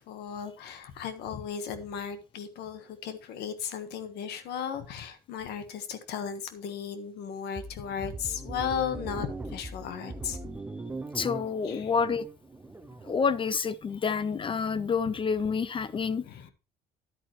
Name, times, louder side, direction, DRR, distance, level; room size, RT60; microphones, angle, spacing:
voice 1, 0.0-10.4 11.6-11.9 16.2-16.5, left 8 dB, 80° left, 1.4 m, -36 dB
sound 1, 7.6-13.2, right 2 dB, 10° right, 0.8 m, -40 dB
voice 2, 11.1-12.3 13.1-16.2, left 5 dB, 30° left, 0.5 m, -28 dB
10.5 x 8.8 x 3.1 m
cardioid pair, 110°, 17 cm